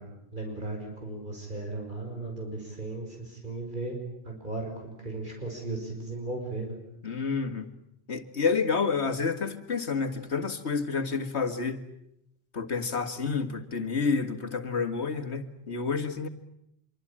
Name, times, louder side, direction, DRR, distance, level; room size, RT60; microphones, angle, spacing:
voice 1, 0.0-4.0 4.2-6.8, right 2 dB, 50° right, 1 dB, 6.0 m, -36 dB
voice 2, 7.0-7.7 8.1-11.8 12.5-16.3, left 5 dB, 90° left, 8 dB, 2.2 m, -29 dB
26.0 x 24.5 x 8.8 m, 0.78 s
omnidirectional pair, 1.1 m